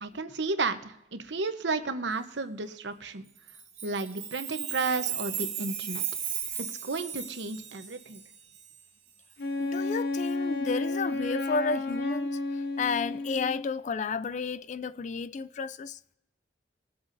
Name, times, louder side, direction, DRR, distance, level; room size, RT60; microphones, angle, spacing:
voice 1, 0.0-3.2 3.8-6.1 6.6-8.2, right 3 dB, 80° right, 0.9 m, -33 dB
Chime, 3.5-8.6, right 8 dB, 40° right, 2.8 m, -36 dB
Wind instrument woodwind instrument, 9.4-13.8, left 2 dB, 60° left, 0.8 m, -31 dB
voice 2, 9.6-16.0, left 4 dB, 40° left, 0.3 m, -32 dB
22.0 x 7.8 x 2.6 m
head